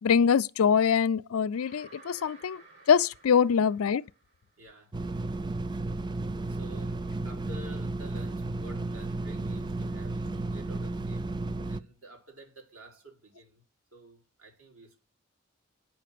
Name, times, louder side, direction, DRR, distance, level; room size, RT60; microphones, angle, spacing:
voice 1, 0.0-2.6 2.9-4.0, left 7 dB, 80° left, 0.4 m, -24 dB
sound 1, 1.5-4.6, right 2 dB, 55° right, 7.1 m, -55 dB
voice 2, 4.6-4.9 6.5-13.6 13.9-15.0, right 1 dB, 75° right, 3.9 m, -51 dB
sound 2, 4.9-11.8, right 2 dB, 20° right, 0.4 m, -33 dB
9.2 x 5.8 x 6.7 m
head